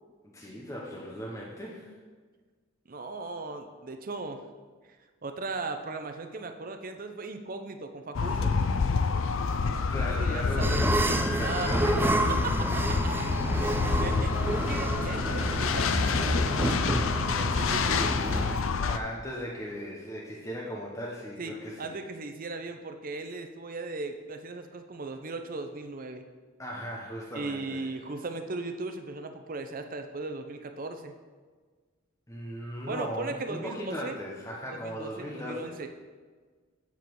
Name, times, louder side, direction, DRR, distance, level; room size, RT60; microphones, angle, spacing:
voice 1, 0.2-1.9 9.9-10.8 11.3-12.3 18.8-22.0 26.6-27.9 32.3-35.7, equal, 15° left, -3 dB, 0.9 m, -38 dB
voice 2, 2.9-4.4 5.2-8.6 10.0-10.9 11.4-11.9 12.7-12.8 13.4-13.6 14.0-16.4 17.4-18.2 21.4-21.5 21.8-26.2 27.3-31.1 32.9-34.2 34.7-35.9, right 3 dB, 45° right, 7 dB, 0.7 m, -37 dB
sound 1, 8.1-19.0, left 5 dB, 70° left, 0.5 m, -28 dB
sound 2, 10.6-18.6, right 1 dB, 10° right, 0.4 m, -29 dB
8.3 x 7.0 x 4.7 m, 1.5 s
head